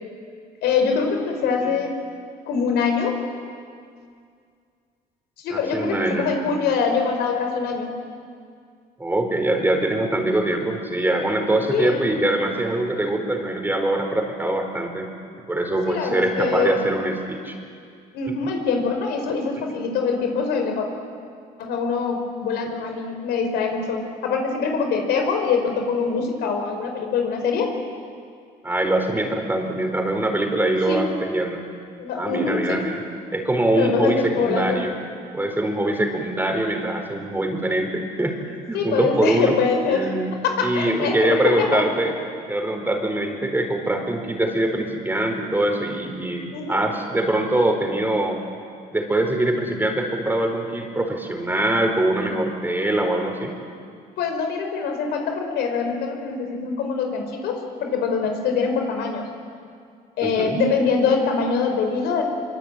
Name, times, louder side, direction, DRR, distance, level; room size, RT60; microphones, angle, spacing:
voice 1, 0.6-2.0 2.5-3.2 5.4-7.9 11.7-12.1 15.8-16.9 18.1-20.9 21.6-27.7 30.9-31.0 32.0-32.8 33.7-34.8 38.7-40.1 40.4-41.9 46.5-46.8 54.2-59.3 60.2-62.2, left 5 dB, 80° left, 4 dB, 5.2 m, -24 dB
voice 2, 5.5-6.3 9.0-15.1 15.5-17.6 19.5-19.6 28.6-31.6 32.2-33.0 33.3-34.9 35.3-39.6 39.9-40.3 40.6-42.1 42.5-48.4 48.9-53.5 60.2-60.6, right 1 dB, 10° right, 3 dB, 4.5 m, -23 dB
24.5 x 24.0 x 9.4 m, 2.2 s
cardioid pair, 110°, 17 cm